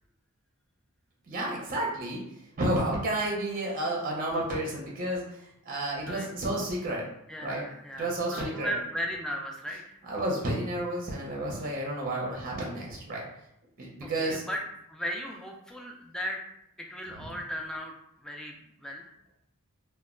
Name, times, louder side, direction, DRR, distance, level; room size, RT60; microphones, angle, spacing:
voice 1, 1.3-2.2 2.6-7.1 7.4-7.7 8.0-8.7 10.1-13.3 13.8-14.4 17.1-17.3, right 1 dB, 40° right, -2 dB, 0.5 m, -31 dB
voice 2, 7.3-9.8 14.0-14.6 14.9-16.4 16.8-17.9 18.2-19.1, equal, 5° left, 0 dB, 0.3 m, -36 dB
2.1 x 2.0 x 3.6 m, 0.77 s
head